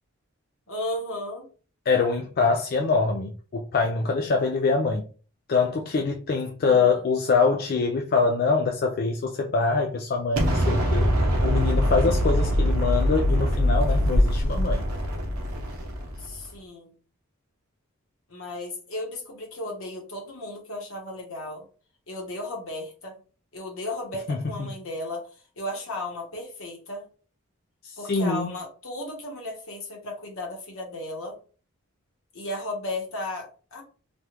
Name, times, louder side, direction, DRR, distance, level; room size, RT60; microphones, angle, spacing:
voice 1, 0.7-1.5 6.6-7.0 16.2-16.9 18.3-21.6 22.1-23.2 23.5-25.3 25.6-27.0 28.0-31.4 32.3-33.8, left 1 dB, 70° left, 1.1 m, -35 dB
voice 2, 1.9-5.1 5.5-11.1 11.4-14.8 24.3-24.7 27.8-28.5, left 4 dB, 45° left, 0.3 m, -24 dB
Explosion, 10.4-16.4, equal, 85° right, 0.9 m, -23 dB
3.3 x 2.4 x 2.9 m
head